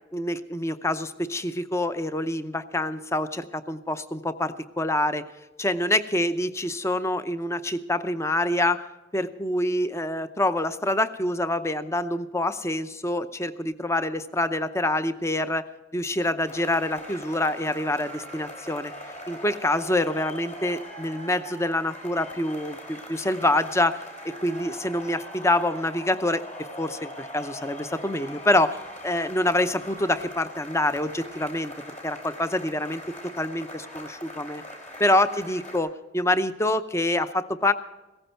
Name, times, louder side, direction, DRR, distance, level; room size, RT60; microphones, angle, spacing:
voice 1, 0.1-5.2 5.6-8.8 9.1-15.7 15.9-18.9 19.3-26.4 26.8-28.8 29.0-31.7 32.0-34.6 35.0-37.7, left 1 dB, 15° left, 12 dB, 0.6 m, -26 dB
sound 1, 16.4-35.8, equal, 45° left, 3.8 m, -41 dB
16.5 x 14.5 x 4.5 m, 1.1 s
head